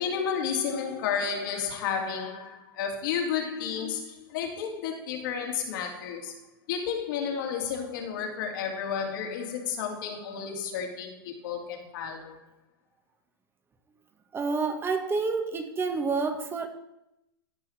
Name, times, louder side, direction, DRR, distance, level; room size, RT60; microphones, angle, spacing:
voice 1, 0.0-6.4 6.7-12.4, left 7 dB, 65° left, 2.7 m, -32 dB
voice 2, 14.3-16.7, right 4 dB, 20° right, 1.6 m, -28 dB
15.5 x 5.8 x 4.3 m
hypercardioid pair, 120°, 12 cm